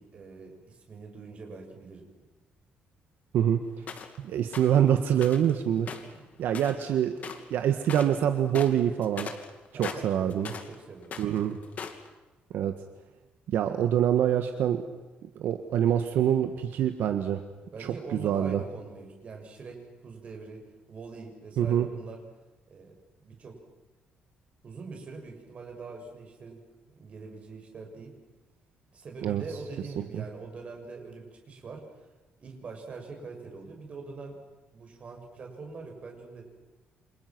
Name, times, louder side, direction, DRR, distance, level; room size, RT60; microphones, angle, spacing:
voice 1, 0.0-2.1 9.7-11.6 17.7-20.6 20.9-22.2 22.7-22.9 23.2-23.6 24.6-26.6 26.9-28.1 28.9-32.1 32.4-34.4 34.7-36.5, right 4 dB, 35° right, 2 dB, 6.9 m, -43 dB
sound 1, 3.9-4.2 4.5-4.8 5.2-5.5 5.8-6.9 7.2-7.5 7.8-8.2 8.5-10.7 11.0-12.1, left 6 dB, 45° left, 2.8 m, -39 dB
voice 2, 4.2-5.9 6.4-7.1 7.5-9.3 9.7-10.5 11.2-11.6 12.5-12.7 13.5-14.8 15.3-17.4 17.8-18.6 21.6-21.9 29.2-29.4 30.0-30.2, right 10 dB, 70° right, 7 dB, 1.6 m, -25 dB
29.0 x 27.5 x 6.2 m, 1.1 s
cardioid pair, 160°, 4 cm